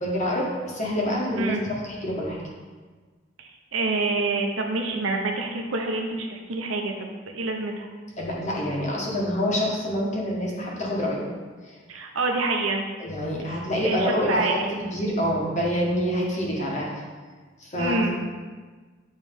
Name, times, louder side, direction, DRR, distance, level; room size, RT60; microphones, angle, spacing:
voice 1, 0.0-1.5 1.9-2.4 8.2-11.3 11.6-11.8 13.0-14.6 14.9-16.9 17.6-18.0, equal, 35° left, -3 dB, 1.3 m, -26 dB
voice 2, 1.4-1.7 3.4-7.9 11.9-12.9 13.8-14.6 17.8-18.1, right 3 dB, 85° right, 2 dB, 0.8 m, -27 dB
9.0 x 3.1 x 3.5 m, 1.4 s
head